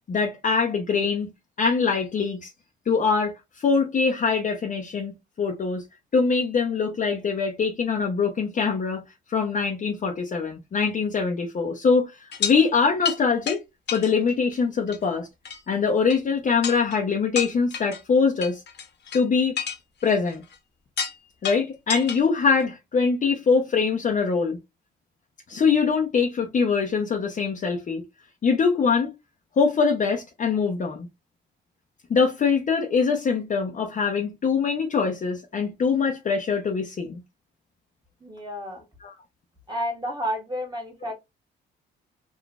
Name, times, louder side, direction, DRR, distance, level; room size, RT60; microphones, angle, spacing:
voice 1, 0.1-1.3 1.6-2.5 2.9-5.1 5.4-5.8 6.1-9.0 9.3-13.6 13.9-15.3 15.7-18.6 19.1-19.6 20.0-20.4 21.4-24.6 25.5-28.0 28.4-29.1 29.6-31.1 32.1-37.2 39.0-39.1, left 5 dB, 40° left, 0.7 m, -23 dB
sound 1, 12.3-12.6 13.0-13.2 13.5-13.6 13.9-14.5 14.9-15.0 15.5-15.6 16.1-16.2 16.6-17.0 17.4-18.0 18.4-19.2 19.6-20.6 21.0-21.2 21.4-22.2 22.6-22.7, left 7 dB, 60° left, 1.1 m, -30 dB
voice 2, 38.2-38.8 39.7-41.1, equal, 20° right, 1.5 m, -31 dB
3.8 x 2.5 x 2.3 m
cardioid pair, 90°, 20 cm